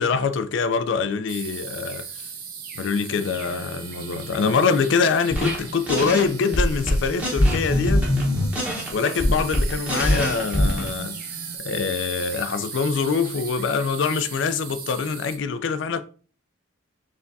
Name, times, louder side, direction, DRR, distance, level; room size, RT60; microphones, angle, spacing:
voice 1, 0.0-2.3 2.8-8.1 8.9-11.2 11.6-16.0, left 5 dB, 60° left, 0.3 m, -24 dB
sound 1, 1.3-15.4, right 6 dB, 45° right, 0.7 m, -38 dB
sound 2, 3.1-11.6, right 3 dB, 60° right, 1.0 m, -41 dB
sound 3, 5.3-5.6 5.9-6.2 6.5-10.9, left 1 dB, 5° right, 1.0 m, -22 dB
4.7 x 3.4 x 2.6 m
head